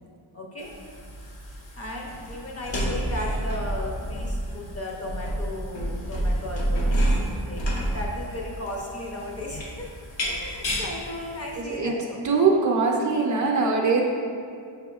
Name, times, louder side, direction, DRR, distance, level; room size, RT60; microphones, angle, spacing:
voice 1, 0.3-0.7 1.8-7.1 7.4-9.9 10.2-12.2 13.8-14.0, left 1 dB, 35° left, -1 dB, 0.6 m, -35 dB
sound 1, 0.6-11.6, right 1 dB, 85° left, 0.8 m, -29 dB
voice 2, 11.6-12.0 12.2-14.0, right 4 dB, 45° right, -1 dB, 0.5 m, -22 dB
6.3 x 3.5 x 2.3 m, 2.3 s
wide cardioid pair, 120°, 44 cm